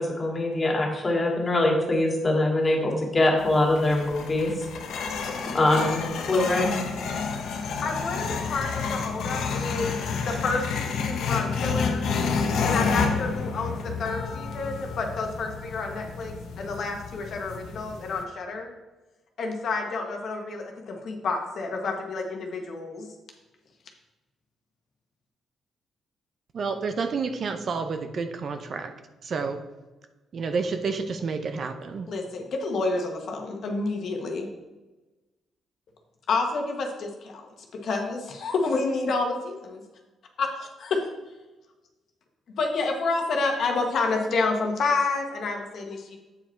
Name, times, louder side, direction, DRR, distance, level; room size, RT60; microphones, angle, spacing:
voice 1, 0.0-4.5 5.5-6.9, left 2 dB, 25° left, 0 dB, 2.0 m, -23 dB
sound 1, 3.4-18.2, left 5 dB, 80° left, 0.9 m, -30 dB
voice 2, 7.8-12.1 12.6-18.7 19.4-23.1 32.1-34.5 36.3-39.8 40.4-41.0 42.5-46.2, left 3 dB, 60° left, 2 dB, 1.3 m, -29 dB
voice 3, 26.5-28.9 29.2-29.6 30.3-32.1, right 4 dB, 50° right, 8 dB, 0.7 m, -29 dB
8.4 x 5.0 x 4.5 m, 1.1 s
cardioid pair, 105°, 0 cm